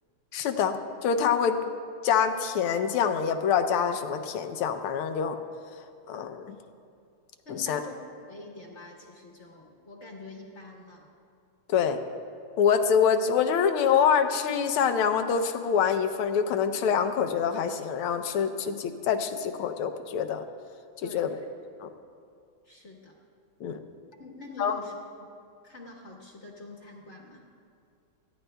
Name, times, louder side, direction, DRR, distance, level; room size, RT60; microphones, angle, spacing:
voice 1, 0.3-1.6 2.0-5.4 6.1-6.6 7.5-7.8 11.7-12.0 12.6-20.4 21.0-21.3 21.8-21.9 23.6-23.8 24.6-24.7, left 7 dB, 85° left, 8 dB, 1.6 m, -25 dB
voice 2, 7.4-7.9 8.3-11.1 21.0-21.5 22.6-23.1 24.2-25.0 25.6-27.5, left 2 dB, 40° left, 0 dB, 1.2 m, -45 dB
29.5 x 10.5 x 2.2 m, 2.4 s
omnidirectional pair, 2.3 m